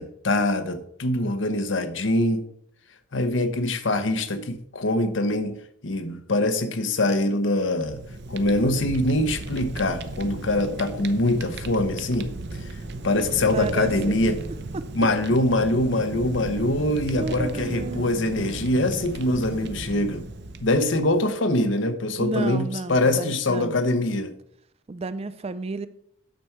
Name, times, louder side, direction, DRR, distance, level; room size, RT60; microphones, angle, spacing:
voice 1, 0.0-2.4 3.1-5.6 5.8-8.0 8.3-12.3 12.6-12.8 13.0-14.4 14.9-20.2 20.6-24.3, left 1 dB, 65° left, 0.9 m, -24 dB
Fire, 7.7-21.2, right 2 dB, 55° right, 0.7 m, -35 dB
voice 2, 13.5-14.3 14.7-14.9 17.2-18.1 22.2-23.8 24.9-25.9, right 3 dB, 30° right, 0.4 m, -32 dB
9.1 x 6.9 x 4.6 m
head